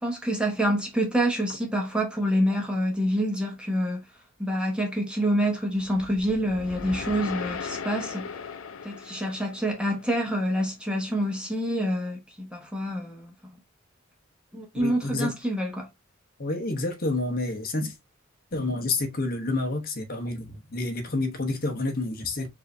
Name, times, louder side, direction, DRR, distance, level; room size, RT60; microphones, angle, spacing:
voice 1, 0.0-4.0 4.4-8.3 8.8-13.3 14.5-15.9, equal, 5° right, 1.0 m, -27 dB
sound 1, 5.8-10.2, left 5 dB, 80° left, 0.5 m, -37 dB
voice 2, 14.7-15.3 16.4-17.9 18.5-22.5, left 2 dB, 45° left, 1.0 m, -29 dB
4.8 x 2.7 x 3.1 m
head